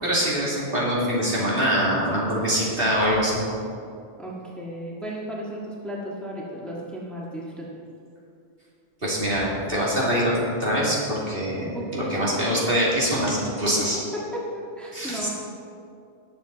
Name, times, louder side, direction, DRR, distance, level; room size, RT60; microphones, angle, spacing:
voice 1, 0.0-3.4 9.0-10.3 10.6-14.0 14.9-15.3, equal, 50° right, -6 dB, 2.8 m, -24 dB
voice 2, 4.2-7.7 11.7-12.3 12.8-13.0 13.8-13.9 14.1-15.3, equal, ahead, -4 dB, 1.6 m, -34 dB
19.5 x 7.3 x 4.0 m, 2.5 s
omnidirectional pair, 1.2 m